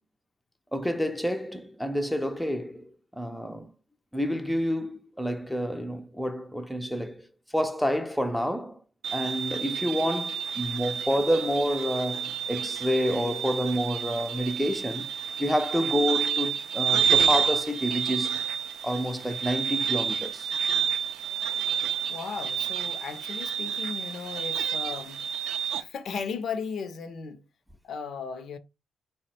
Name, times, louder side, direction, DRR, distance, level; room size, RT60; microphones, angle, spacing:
voice 1, 0.7-3.7 4.1-7.3 7.5-8.8 9.1-15.1 15.4-18.4 18.8-20.5, equal, ahead, 0.4 m, -28 dB
sound 1, 9.0-25.8, right 7 dB, 85° right, 0.5 m, -29 dB
voice 2, 22.1-27.4 27.8-28.6, left 6 dB, 60° left, 0.5 m, -36 dB
3.5 x 2.1 x 4.0 m
cardioid pair, 90°, 0 cm